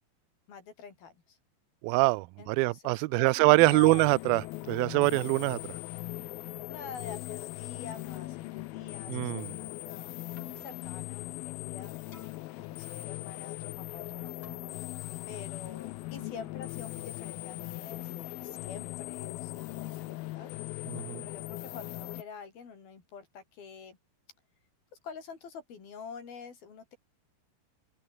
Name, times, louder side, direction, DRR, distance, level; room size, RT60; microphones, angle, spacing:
voice 1, 0.5-1.4 2.4-4.0 6.7-10.2 10.5-11.9 12.7-14.9 15.3-24.0 25.0-27.0, left 6 dB, 60° left, 6.5 m, -47 dB
voice 2, 1.8-4.4 4.7-5.6 9.1-9.5 20.9-21.2, right 23 dB, 90° right, 2.1 m, -24 dB
sound 1, 3.6-22.2, left 20 dB, 85° left, 2.2 m, -40 dB
Keyboard (musical), 10.2-18.4, left 3 dB, 40° left, 8.0 m, -58 dB
open air
omnidirectional pair, 5.0 m